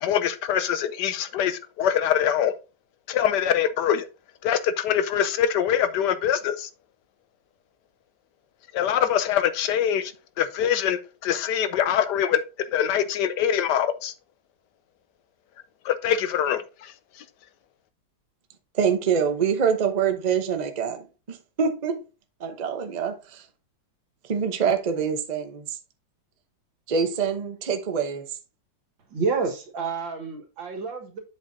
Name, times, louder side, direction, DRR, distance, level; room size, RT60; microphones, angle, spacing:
voice 1, 0.0-2.5 3.1-4.1 4.4-6.7 8.7-10.1 10.4-14.1 15.8-17.2, left 9 dB, 75° left, 1.1 m, -24 dB
voice 2, 18.7-22.0 22.4-23.4 24.3-25.8 26.9-28.3, right 6 dB, 40° right, 0.6 m, -25 dB
voice 3, 29.1-31.2, right 4 dB, 85° right, 2.4 m, -29 dB
7.8 x 6.5 x 2.7 m
omnidirectional pair, 2.0 m